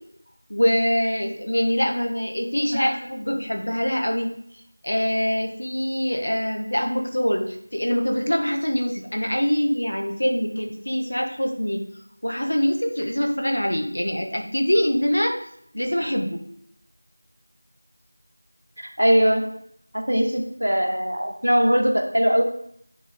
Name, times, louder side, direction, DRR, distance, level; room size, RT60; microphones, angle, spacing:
voice 1, 0.5-4.3 4.8-11.8 12.2-15.4 15.7-16.4, equal, 80° left, 3 dB, 1.5 m, -24 dB
voice 2, 18.8-19.6 19.9-22.4, equal, 85° right, 4 dB, 1.4 m, -21 dB
9.2 x 3.6 x 3.8 m, 0.69 s
figure-of-eight pair, 180°, 0 cm